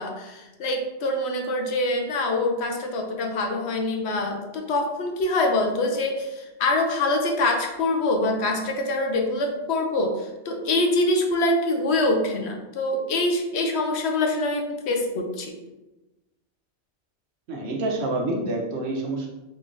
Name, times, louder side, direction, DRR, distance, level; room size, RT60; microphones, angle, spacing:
voice 1, 0.0-15.6, left 2 dB, 70° left, 3 dB, 0.8 m, -25 dB
voice 2, 17.5-19.3, right 2 dB, 70° right, 0 dB, 1.0 m, -27 dB
3.8 x 3.2 x 2.6 m, 1.0 s
omnidirectional pair, 1.2 m